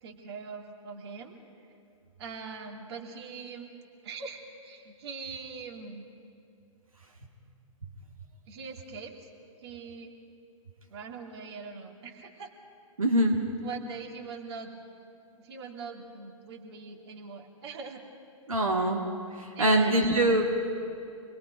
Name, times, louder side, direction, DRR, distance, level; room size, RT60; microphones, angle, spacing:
voice 1, 0.0-1.4 2.2-3.7 4.0-6.0 8.5-9.2 9.6-10.1 10.9-12.5 13.6-14.8 15.4-18.0 19.5-20.4, right 5 dB, 50° right, 2 dB, 2.5 m, -42 dB
voice 2, 13.0-13.5 18.5-19.1 19.4-20.4, right 1 dB, 75° right, 1 dB, 2.1 m, -24 dB
27.5 x 20.5 x 5.1 m, 2.5 s
figure-of-eight pair, 115°, 18 cm